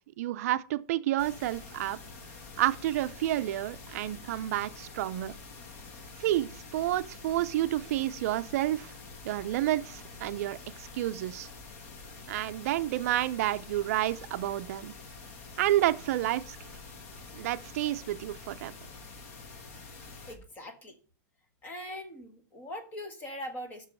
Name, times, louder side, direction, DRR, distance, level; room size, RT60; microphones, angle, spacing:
voice 1, 0.2-2.0 2.6-5.4 6.2-8.9 9.2-11.5 12.3-14.9 15.6-16.6 17.3-18.7, right 14 dB, 50° right, 0.5 m, -30 dB
sound 1, 1.2-20.4, left 4 dB, 45° left, 1.4 m, -47 dB
voice 2, 20.3-21.0 21.6-23.9, left 1 dB, 15° left, 1.2 m, -41 dB
6.1 x 5.5 x 6.2 m
supercardioid pair, 170°, 10 cm